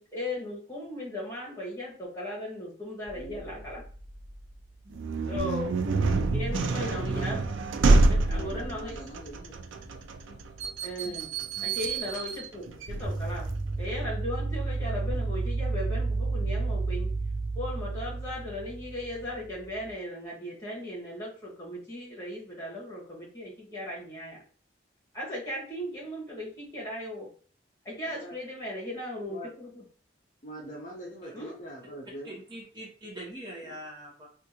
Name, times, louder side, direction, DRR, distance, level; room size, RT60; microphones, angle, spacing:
voice 1, 0.0-3.8 5.3-5.7 6.3-7.4 8.1-8.9 10.3-10.4 10.8-13.5 13.8-17.1 17.5-24.4 25.1-27.3 27.8-29.8 31.3-31.5, left 1 dB, 15° left, -5 dB, 1.4 m, -37 dB
voice 2, 3.1-3.7 6.8-7.5 8.3-9.5 28.0-28.4 29.3-29.5 30.4-32.3 33.6-33.7, equal, 40° left, -2 dB, 0.7 m, -43 dB
sound 1, 3.1-4.5 4.9-5.0 5.3-9.7 12.9-19.9, right 3 dB, 55° right, 0.8 m, -33 dB
sound 2, 4.9-13.6, right 3 dB, 90° right, 0.4 m, -27 dB
voice 3, 32.2-34.3, right 1 dB, 25° right, -3 dB, 0.8 m, -42 dB
3.5 x 2.5 x 2.8 m, 0.43 s
head